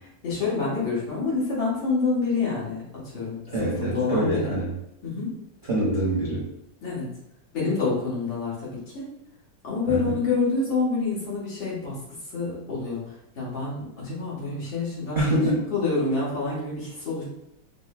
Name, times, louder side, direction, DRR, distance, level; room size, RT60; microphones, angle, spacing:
voice 1, 0.2-4.5 5.0-5.3 6.8-7.1 7.5-9.1 9.6-15.2 15.7-17.2, left 4 dB, 85° left, -7 dB, 2.2 m, -27 dB
voice 2, 3.5-4.7 5.7-6.5 9.9-10.0 15.1-15.7, right 1 dB, 45° right, -7 dB, 0.7 m, -25 dB
5.3 x 2.1 x 2.4 m, 0.80 s
omnidirectional pair, 2.1 m